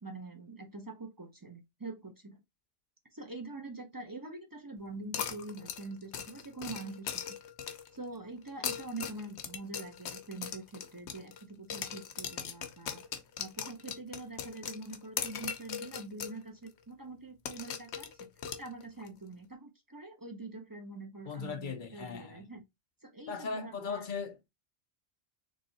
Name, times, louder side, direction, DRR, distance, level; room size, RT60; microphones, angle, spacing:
voice 1, 0.0-2.4 3.1-7.2 7.9-13.0 13.4-18.3 18.6-22.6 23.0-24.0, right 2 dB, 20° right, 0.7 m, -44 dB
sound 1, 5.1-8.0 8.5-11.4 11.7-16.4 16.7-16.8 17.4-19.1, left 8 dB, 80° left, 1.0 m, -39 dB
voice 2, 21.3-22.5 23.3-24.5, left 5 dB, 50° left, 0.7 m, -38 dB
3.4 x 3.2 x 4.0 m
omnidirectional pair, 1.2 m